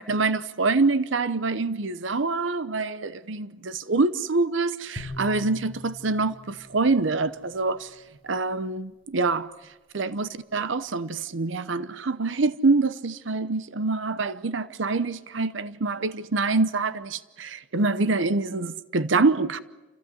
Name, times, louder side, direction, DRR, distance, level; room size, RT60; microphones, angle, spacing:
voice 1, 0.0-8.0 8.2-9.5 9.9-19.6, right 3 dB, 75° right, 0.8 m, -25 dB
sound 1, 5.0-8.2, left 1 dB, 30° right, 5.9 m, -42 dB
29.0 x 15.0 x 9.8 m
head